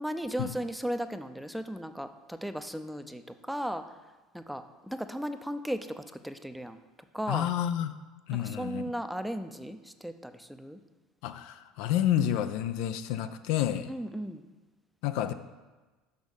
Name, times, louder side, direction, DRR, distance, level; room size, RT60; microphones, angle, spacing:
voice 1, 0.0-4.0 4.3-6.8 7.1-7.5 8.4-10.8 13.9-14.5, equal, ahead, 9 dB, 0.5 m, -36 dB
voice 2, 7.3-8.0 8.3-8.8 11.2-13.9 15.0-15.3, left 11 dB, 65° left, 10 dB, 0.4 m, -29 dB
6.1 x 5.3 x 6.4 m, 1.2 s
hypercardioid pair, 70°, 0 cm